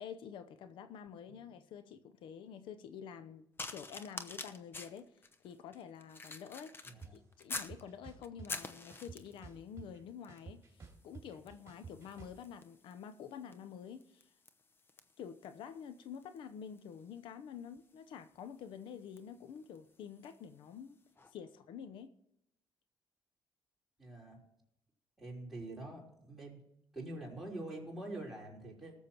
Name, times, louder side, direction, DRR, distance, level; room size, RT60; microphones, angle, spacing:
voice 1, 0.0-3.4 3.7-5.1 5.4-14.3 15.2-21.0 21.3-22.1, left 7 dB, 80° left, 11 dB, 0.7 m, -48 dB
sound 1, 3.6-7.8 8.2-9.5 10.2-10.5 10.8-20.5 21.2-21.3, left 3 dB, 25° left, 0.8 m, -49 dB
voice 2, 6.8-7.1 24.0-24.4 25.2-26.6 26.9-28.9, right 2 dB, ahead, -5 dB, 5.0 m, -45 dB
sound 2, 7.0-7.1 7.5-8.5 8.9-10.0 10.3-12.4, right 5 dB, 30° right, 2.8 m, -51 dB
19.0 x 7.2 x 4.5 m, 0.80 s
cardioid pair, 110°, 8 cm